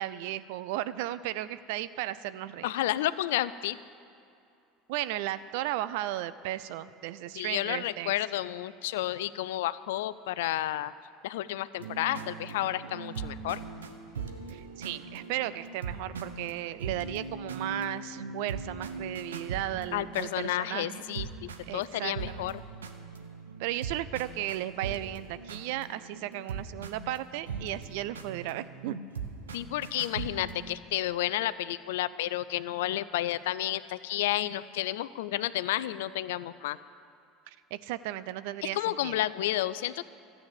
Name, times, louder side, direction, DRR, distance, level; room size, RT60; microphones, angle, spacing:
voice 1, 0.0-2.7 4.9-8.1 14.5-21.0 21.7-22.5 23.6-29.0 37.5-39.1, right 14 dB, 65° right, 15 dB, 0.5 m, -35 dB
voice 2, 2.6-3.8 7.3-10.9 11.2-13.6 19.9-22.6 29.5-36.8 38.7-40.1, left 14 dB, 70° left, 16 dB, 0.4 m, -31 dB
sound 1, 11.8-30.8, right 5 dB, 80° right, 0.9 m, -40 dB
14.0 x 8.6 x 7.6 m, 2.6 s
hypercardioid pair, 75°, 0 cm